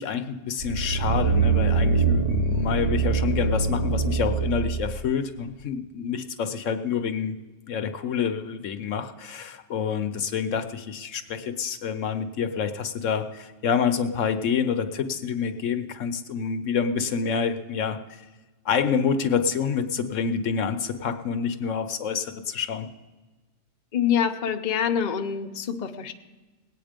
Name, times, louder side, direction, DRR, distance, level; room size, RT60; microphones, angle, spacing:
voice 1, 0.0-7.4 7.7-18.2 18.6-22.9, left 6 dB, 70° left, 9 dB, 1.1 m, -27 dB
sound 1, 0.6-5.0 5.5-5.6, right 4 dB, 40° right, 0.6 m, -23 dB
voice 2, 23.9-26.1, left 8 dB, 40° left, 5 dB, 0.7 m, -25 dB
19.5 x 8.7 x 5.1 m, 1.2 s
omnidirectional pair, 1.4 m